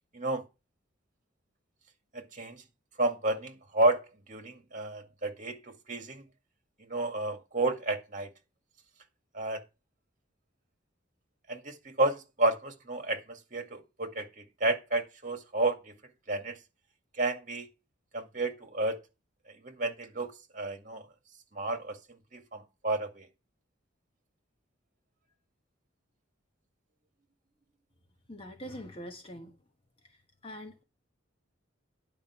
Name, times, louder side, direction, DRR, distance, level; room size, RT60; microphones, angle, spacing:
voice 1, 2.1-2.6 3.0-4.0 4.3-6.2 6.9-8.3 9.3-9.6 11.5-15.9 16.3-16.6 17.2-17.7 18.1-19.0 19.6-21.0 21.5-22.0 22.3-23.3, right 2 dB, 40° right, 1.9 m, -31 dB
voice 2, 28.3-29.5 30.1-30.2 30.4-30.8, equal, 25° left, 1.2 m, -43 dB
10.5 x 5.3 x 5.9 m
head